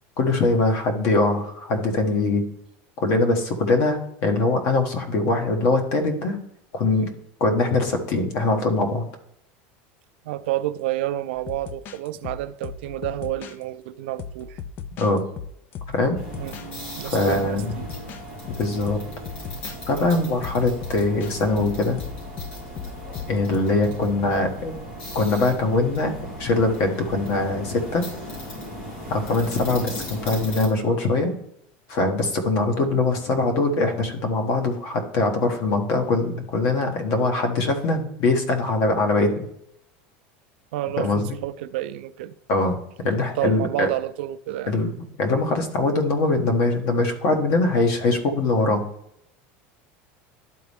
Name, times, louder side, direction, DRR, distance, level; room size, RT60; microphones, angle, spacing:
voice 1, 0.2-2.5 3.0-6.4 6.7-7.1 7.4-9.1 15.0-15.2 15.9-16.2 17.1-17.9 18.6-19.0 19.9-22.0 23.3-24.7 25.1-26.1 26.4-28.0 29.1-31.3 31.9-39.5 41.0-41.4 42.5-42.8 43.0-43.9 44.7-48.8, left 2 dB, 55° left, 1.4 m, -22 dB
voice 2, 10.2-14.6 16.4-16.6 17.0-17.9 19.9-20.1 23.9-24.1 40.7-42.3 43.4-44.7, right 14 dB, 80° right, 0.5 m, -29 dB
sound 1, 11.4-13.6 14.2-16.7 17.3-18.2 18.5-19.8 20.4-23.6, left 6 dB, 35° left, 0.4 m, -37 dB
sound 2, 16.1-30.7, left 1 dB, 85° left, 3.2 m, -37 dB
11.5 x 4.2 x 3.5 m
supercardioid pair, 160°, 6 cm